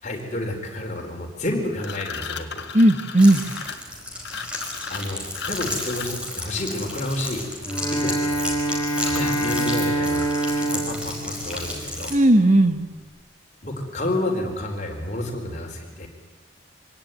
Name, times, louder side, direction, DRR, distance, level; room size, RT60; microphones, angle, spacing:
voice 1, 0.0-2.6 4.9-7.4 7.9-8.2 9.1-10.3 10.6-12.1 13.6-16.1, left 1 dB, 35° left, 1 dB, 4.4 m, -30 dB
sound 1, 1.8-6.4, left 6 dB, 55° left, 1.7 m, -35 dB
voice 2, 2.7-3.4 12.1-12.8, right 1 dB, 35° right, 8 dB, 1.7 m, -15 dB
sound 2, 3.2-12.1, left 1 dB, 5° right, 4.9 m, -33 dB
Bowed string instrument, 7.6-12.2, right 1 dB, 15° left, 2.6 m, -26 dB
25.0 x 18.0 x 9.4 m, 1.2 s
head